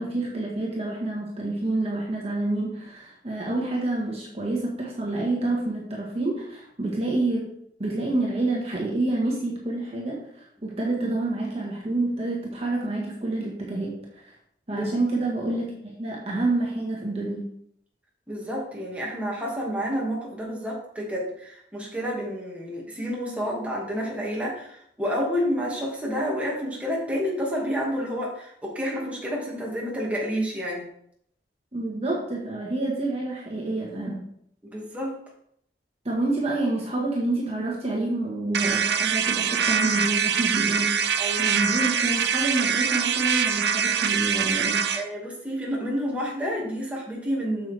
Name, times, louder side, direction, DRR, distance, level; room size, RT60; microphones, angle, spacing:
voice 1, 0.0-7.5 7.8-10.3 10.6-14.3 14.7-17.4 31.7-34.2 36.0-41.1 41.4-44.9, right 2 dB, 35° right, -3 dB, 1.7 m, -28 dB
voice 2, 18.3-30.9 34.6-35.2 41.2-41.5 44.9-47.7, equal, 10° right, -3 dB, 2.2 m, -29 dB
sound 1, 38.5-45.0, right 7 dB, 65° right, 0.6 m, -24 dB
8.4 x 7.0 x 3.5 m, 0.70 s
head